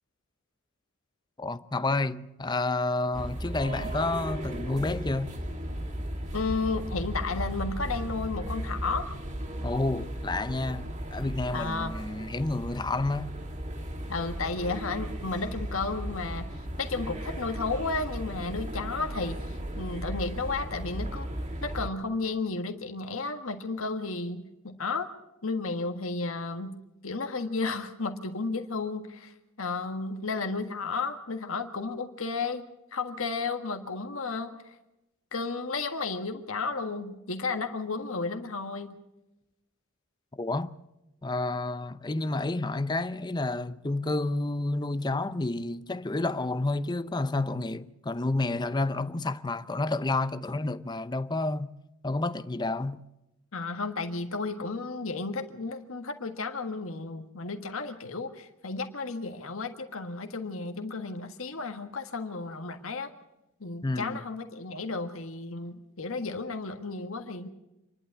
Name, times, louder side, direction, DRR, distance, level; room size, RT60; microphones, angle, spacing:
voice 1, 1.4-5.3 9.6-13.3 40.3-40.7 41.2-51.7 52.0-53.0 63.8-64.2, left 2 dB, 20° left, 0.6 m, -30 dB
sound 1, 3.1-21.9, right 1 dB, 35° right, 2.6 m, -36 dB
voice 2, 6.3-9.1 11.5-11.9 14.1-21.3 21.6-25.1 25.4-26.7 27.0-34.8 35.3-38.9 53.5-63.1 63.6-67.5, left 3 dB, 75° left, 1.6 m, -33 dB
27.0 x 11.5 x 8.3 m
head